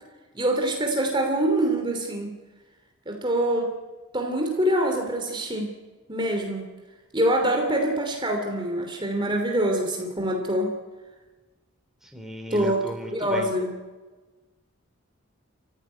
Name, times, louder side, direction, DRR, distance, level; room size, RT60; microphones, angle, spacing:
voice 1, 0.3-2.3 3.1-3.7 4.1-5.7 6.1-6.6 7.1-10.7 12.5-12.8 13.1-13.7, right 1 dB, 20° right, 2 dB, 2.9 m, -25 dB
voice 2, 12.0-13.5, equal, ahead, 2 dB, 3.5 m, -35 dB
29.5 x 15.5 x 9.6 m, 1.3 s
head